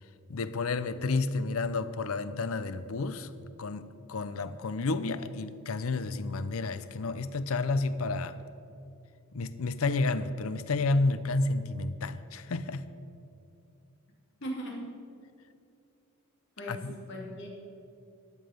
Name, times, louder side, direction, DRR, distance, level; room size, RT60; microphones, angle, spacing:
voice 1, 0.3-3.3 3.6-8.4 9.3-12.9 16.7-16.9, left 3 dB, 75° left, 13 dB, 0.6 m, -31 dB
voice 2, 14.4-14.9 16.6-17.5, equal, 55° left, -1 dB, 2.4 m, -38 dB
13.0 x 9.5 x 5.1 m, 2.5 s
head